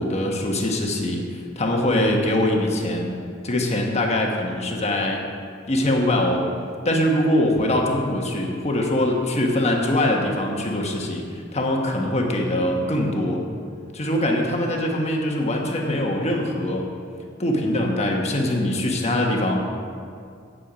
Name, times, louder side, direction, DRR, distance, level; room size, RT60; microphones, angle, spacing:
voice 1, 0.0-3.1 3.4-5.2 5.7-6.5 6.8-13.4 13.9-16.8 17.4-19.6, left 1 dB, 35° left, 1 dB, 1.2 m, -23 dB
8.6 x 8.4 x 5.1 m, 2.3 s
head